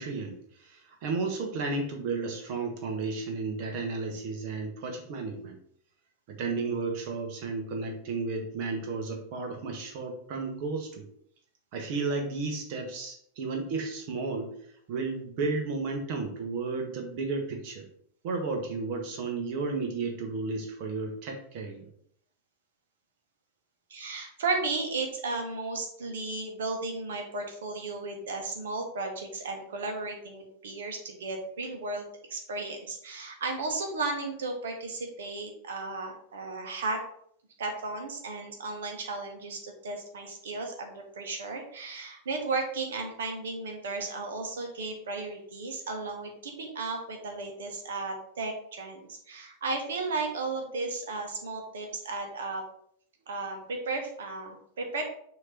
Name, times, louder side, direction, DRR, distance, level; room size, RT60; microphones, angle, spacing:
voice 1, 0.0-5.6 6.3-11.1 11.7-14.6 14.9-17.9 18.2-21.9, right 3 dB, 45° right, 3 dB, 1.2 m, -33 dB
voice 2, 23.9-37.0 37.6-52.6 53.3-55.0, right 3 dB, 60° right, 3 dB, 1.4 m, -34 dB
6.4 x 3.1 x 5.2 m, 0.66 s
figure-of-eight pair, 90°, 0 cm